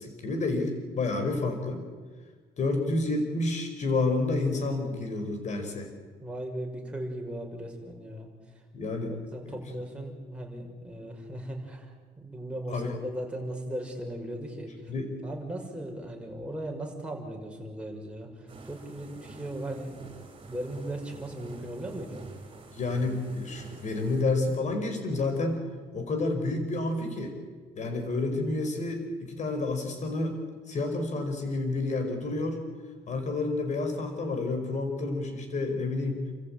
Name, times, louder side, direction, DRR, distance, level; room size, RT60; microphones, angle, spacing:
voice 1, 0.0-1.8 2.6-5.9 8.7-9.2 9.4-9.6 12.7-13.0 14.9-15.1 22.7-25.6 25.9-27.3 27.8-30.4 30.7-32.6 33.1-36.2, left 2 dB, 45° left, 5 dB, 5.1 m, -29 dB
voice 2, 6.2-8.3 8.5-8.6 9.1-14.9 15.2-22.2, right 1 dB, 5° right, 0 dB, 5.9 m, -38 dB
sound 1, 18.5-24.2, right 3 dB, 30° right, 5.0 m, -48 dB
29.5 x 14.5 x 9.0 m, 1.5 s
cardioid pair, 110°, 17 cm